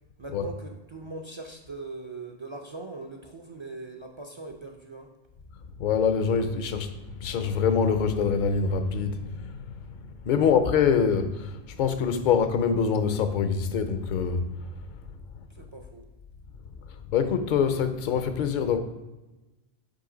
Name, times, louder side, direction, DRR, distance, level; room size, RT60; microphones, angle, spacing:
voice 1, 0.2-5.1 10.3-10.6 15.6-16.1, right 3 dB, 45° right, 2 dB, 0.4 m, -41 dB
voice 2, 5.8-10.0 10.3-14.7 16.9-18.8, left 6 dB, 55° left, 9 dB, 0.6 m, -25 dB
7.8 x 3.2 x 3.8 m, 1.1 s
omnidirectional pair, 1.1 m